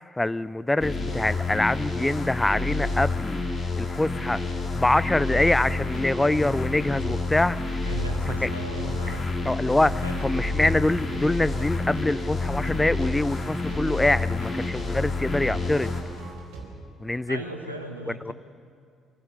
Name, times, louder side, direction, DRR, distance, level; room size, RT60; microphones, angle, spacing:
voice 1, 0.2-3.4 3.8-4.4 4.7-7.9 8.3-8.5 9.1-9.2 9.4-15.9 17.0-17.4 18.1-18.3, left 2 dB, 10° left, 17 dB, 0.4 m, -25 dB
sound 1, 0.8-16.3, left 3 dB, 35° left, 2.7 m, -29 dB
sound 2, 5.6-16.7, right 3 dB, 60° right, 3.8 m, -41 dB
voice 2, 7.8-9.2 9.8-10.2 17.3-18.3, right 1 dB, 90° right, 4 dB, 1.3 m, -37 dB
24.0 x 15.5 x 6.9 m, 2.3 s
figure-of-eight pair, 45°, 0 cm